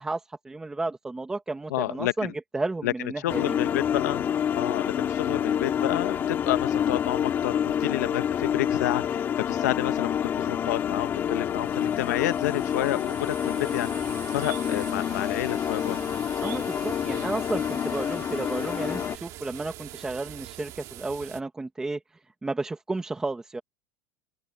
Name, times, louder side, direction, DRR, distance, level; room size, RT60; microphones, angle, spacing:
voice 1, 0.0-3.5 16.4-22.0 22.4-23.6, right 3 dB, 5° right, 1.4 m, -32 dB
voice 2, 1.7-2.3 2.8-2.9 3.2-4.2 4.5-16.0, left 16 dB, 85° left, 0.9 m, -30 dB
sound 1, 3.3-19.2, left 9 dB, 25° left, 1.9 m, -28 dB
sound 2, 11.3-21.4, right 16 dB, 40° right, 2.5 m, -44 dB
open air
supercardioid pair, 165°, 9 cm